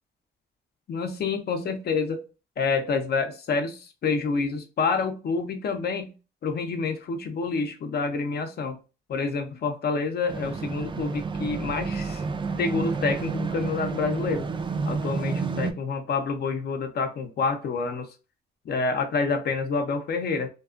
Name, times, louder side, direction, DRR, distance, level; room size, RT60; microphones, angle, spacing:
voice 1, 0.9-2.2 2.6-6.1 6.4-8.8 9.1-12.2 12.6-14.5 14.9-18.1 18.6-20.5, left 4 dB, 55° left, 0.7 m, -28 dB
sound 1, 10.3-15.7, right 4 dB, 25° right, 0.4 m, -30 dB
2.4 x 2.3 x 2.4 m
cardioid pair, 90°, 20 cm